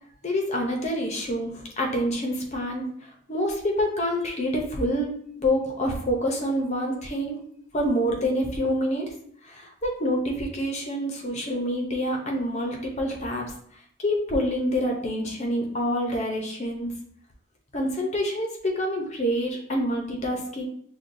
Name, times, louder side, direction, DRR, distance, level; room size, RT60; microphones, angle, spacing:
voice 1, 0.2-5.1 5.4-7.4 7.7-9.1 9.4-13.5 14.0-16.9 17.7-20.6, equal, 35° left, 1 dB, 0.6 m, -27 dB
6.0 x 2.2 x 2.6 m, 0.65 s
head